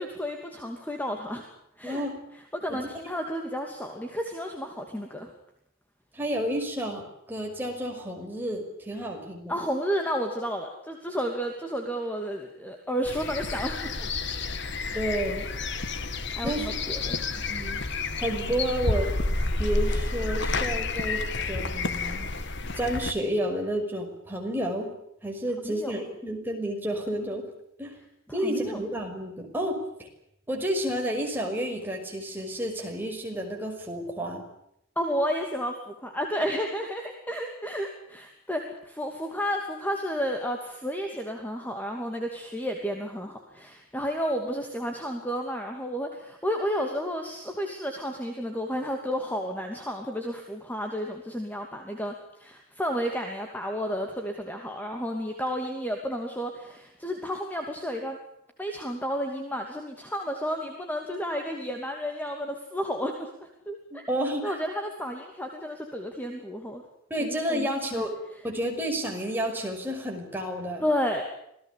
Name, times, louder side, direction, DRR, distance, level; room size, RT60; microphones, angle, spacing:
voice 1, 0.0-1.4 1.8-2.0 2.5-5.3 9.5-14.1 16.3-17.2 25.6-25.9 28.4-28.8 35.0-58.2 58.6-64.0 64.4-66.8 67.2-68.0 70.8-71.2, equal, 10° left, 3 dB, 2.7 m, -32 dB
voice 2, 1.8-2.2 2.7-2.8 6.1-9.5 14.9-15.5 16.4-16.7 17.4-17.8 18.2-19.1 19.6-22.2 22.7-24.9 25.2-27.4 27.8-27.9 28.3-29.8 30.5-34.4 64.1-64.6 67.1-68.1 68.4-70.8, equal, 10° right, 1 dB, 5.8 m, -30 dB
sound 1, 13.1-23.1, left 3 dB, 55° left, 2.0 m, -30 dB
27.0 x 18.5 x 8.5 m, 0.77 s
head